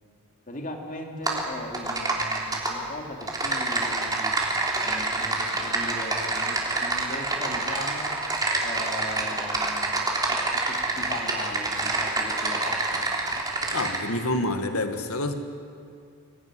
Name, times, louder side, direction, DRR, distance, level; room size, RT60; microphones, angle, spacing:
voice 1, 0.5-4.4 4.8-8.2 8.6-10.0 10.5-13.1, left 1 dB, 40° left, 3 dB, 2.9 m, -38 dB
Typing, 1.3-1.4 1.7-2.7 3.2-14.0, right 2 dB, 20° right, 3.4 m, -27 dB
voice 2, 13.7-15.3, left 2 dB, 75° left, 7 dB, 1.9 m, -27 dB
24.5 x 17.5 x 10.0 m, 2.4 s
head